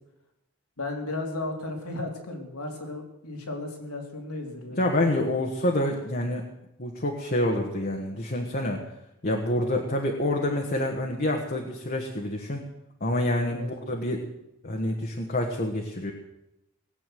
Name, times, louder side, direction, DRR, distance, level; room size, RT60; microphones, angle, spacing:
voice 1, 0.8-4.8 13.5-13.7, left 2 dB, 90° left, 2 dB, 3.2 m, -34 dB
voice 2, 4.7-6.4 6.8-8.8 9.2-12.6 13.0-14.3 14.6-16.1, left 1 dB, 40° left, 0 dB, 1.5 m, -27 dB
19.0 x 8.5 x 7.8 m, 0.89 s
head